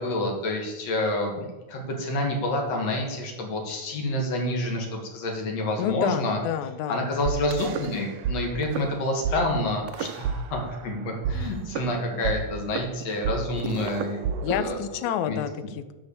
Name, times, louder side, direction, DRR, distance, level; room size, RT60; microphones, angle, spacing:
voice 1, 0.0-6.4 6.9-14.8 15.3-15.4, left 1 dB, 65° left, 1 dB, 2.9 m, -28 dB
voice 2, 5.8-7.3 14.4-15.9, left 9 dB, 85° left, 12 dB, 2.1 m, -29 dB
sound 1, 7.3-8.4 8.6-8.9 9.2-9.4 9.9-10.9 11.2-15.3, right 7 dB, 75° right, 1.7 m, -30 dB
9.4 x 6.6 x 6.8 m, 1.1 s
omnidirectional pair, 3.3 m